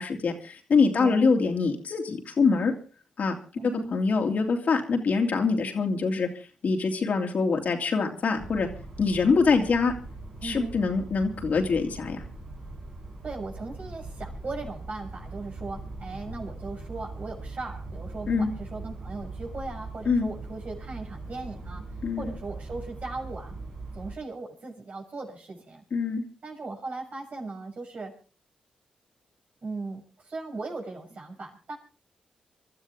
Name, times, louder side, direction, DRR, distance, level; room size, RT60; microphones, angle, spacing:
voice 1, 0.0-2.7 3.2-3.4 3.6-6.3 6.6-8.7 9.0-9.9 10.4-12.2 18.3-18.5 20.1-20.3 22.0-22.3 25.9-26.2, left 4 dB, 60° left, 3 dB, 3.0 m, -24 dB
voice 2, 1.0-1.3 3.5-3.9 10.4-10.8 13.2-21.8 22.2-23.5 23.9-25.8 26.4-28.1 29.6-31.8, right 3 dB, 55° right, 1 dB, 6.7 m, -38 dB
sound 1, 8.4-24.1, right 2 dB, 85° right, 6.0 m, -40 dB
25.0 x 12.5 x 3.7 m, 0.37 s
supercardioid pair, 45°, 3 cm